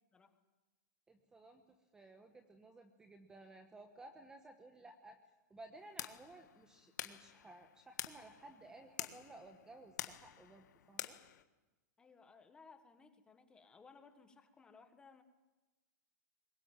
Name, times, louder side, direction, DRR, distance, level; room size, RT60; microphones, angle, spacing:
voice 1, 1.1-5.2 5.5-11.2, right 2 dB, 5° right, 5 dB, 1.1 m, -57 dB
sound 1, 5.8-11.4, left 11 dB, 75° left, 1.6 m, -48 dB
voice 2, 12.0-15.2, left 4 dB, 10° left, 8 dB, 1.5 m, -61 dB
22.0 x 19.0 x 9.0 m, 1.1 s
supercardioid pair, 165°, 10 cm